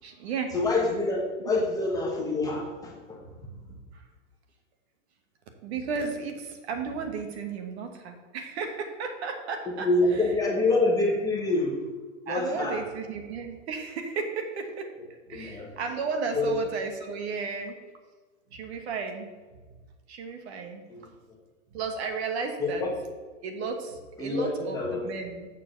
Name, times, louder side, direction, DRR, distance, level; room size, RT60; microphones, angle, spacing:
voice 1, 0.0-0.5 1.5-1.6 3.7-4.0 5.6-9.9 12.3-14.9 15.3-17.8 18.5-19.3 20.1-20.8 21.7-22.8 23.4-25.5, right 4 dB, 55° right, 4 dB, 1.3 m, -33 dB
voice 2, 0.5-3.3 9.7-11.8 12.3-12.8 15.3-15.7 16.3-16.6 20.9-21.1 22.6-22.9 24.2-25.1, left 2 dB, 10° left, -2 dB, 1.1 m, -26 dB
7.0 x 3.9 x 6.3 m, 1.3 s
hypercardioid pair, 130°, 39 cm